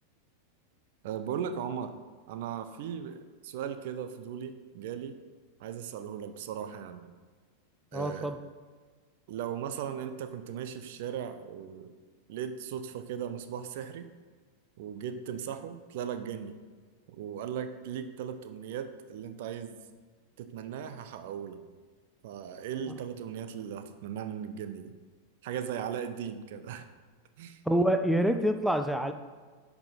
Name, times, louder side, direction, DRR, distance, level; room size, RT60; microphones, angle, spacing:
voice 1, 1.0-1.9 2.3-5.2 5.6-7.1 7.9-8.3 9.3-11.9 12.3-14.1 14.8-16.6 17.1-19.8 20.4-21.7 22.2-24.9 25.4-26.9 27.4-27.6, right 8 dB, 50° right, 9 dB, 0.7 m, -37 dB
voice 2, 7.9-8.4 27.7-29.1, right 1 dB, ahead, 7 dB, 0.7 m, -26 dB
11.5 x 6.1 x 5.7 m, 1.5 s
figure-of-eight pair, 90°, 0 cm